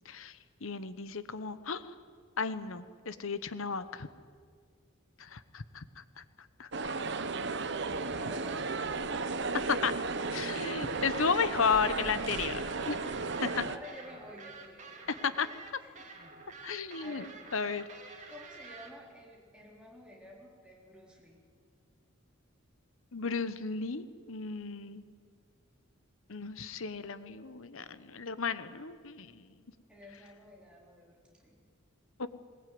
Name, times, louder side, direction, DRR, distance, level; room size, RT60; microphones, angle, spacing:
voice 1, 0.6-1.8 2.4-4.1 5.2-5.8 6.6-6.9 9.7-9.9 10.3-13.0 13.4-13.6 15.1-15.5 16.6-17.3 17.5-17.8 23.1-25.0 26.3-29.4 32.2-32.3, left 5 dB, 70° left, 13 dB, 1.0 m, -33 dB
sound 1, 6.7-13.8, right 3 dB, 55° right, 1.0 m, -34 dB
voice 2, 8.0-9.7 10.1-10.7 11.4-12.2 13.6-15.0 15.8-16.1 16.6-17.4 18.3-21.4 29.9-31.6, left 1 dB, 5° right, -3 dB, 4.0 m, -52 dB
sound 2, 10.6-18.9, right 4 dB, 35° right, 2.5 m, -49 dB
20.5 x 20.0 x 9.5 m, 2.1 s
head